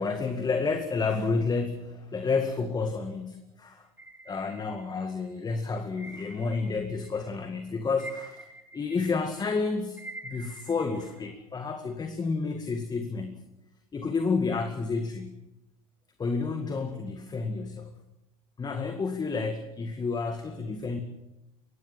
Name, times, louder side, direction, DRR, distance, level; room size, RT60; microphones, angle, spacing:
voice 1, 0.0-3.9 4.3-8.5 8.7-13.4 13.9-15.4 16.2-17.9 18.6-21.0, left 4 dB, 20° left, 7 dB, 2.1 m, -30 dB
sound 1, 4.0-5.3 6.0-7.3 7.6-11.3, right 2 dB, 10° right, 3.2 m, -47 dB
23.5 x 18.5 x 7.6 m, 0.95 s
figure-of-eight pair, 75°, 18 cm